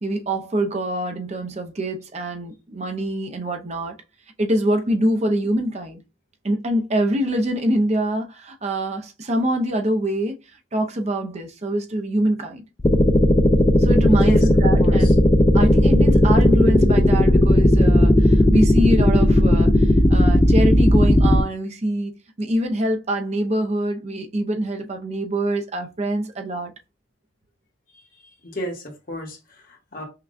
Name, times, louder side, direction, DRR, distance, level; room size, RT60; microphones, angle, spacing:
voice 1, 0.0-4.0 4.4-6.0 6.4-10.4 10.7-12.6 13.8-15.2 15.5-26.7, right 1 dB, 35° right, 0.6 m, -24 dB
sound 1, 12.8-21.4, left 1 dB, 20° left, 0.3 m, -15 dB
voice 2, 14.8-15.1 27.9-30.0, equal, 45° left, 1.2 m, -33 dB
5.7 x 2.3 x 2.5 m
head